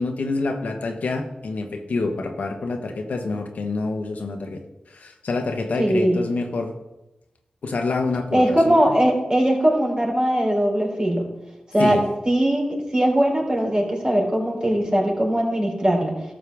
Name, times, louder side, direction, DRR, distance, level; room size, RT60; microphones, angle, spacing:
voice 1, 0.0-4.6 4.9-6.7 7.6-8.8 11.8-12.0, left 3 dB, 80° left, 4 dB, 1.1 m, -27 dB
voice 2, 5.8-6.2 8.3-11.2 11.7-12.0 12.2-16.2, right 1 dB, 35° right, -1 dB, 3.5 m, -20 dB
12.5 x 6.7 x 3.5 m, 0.97 s
cardioid pair, 40°, 3 cm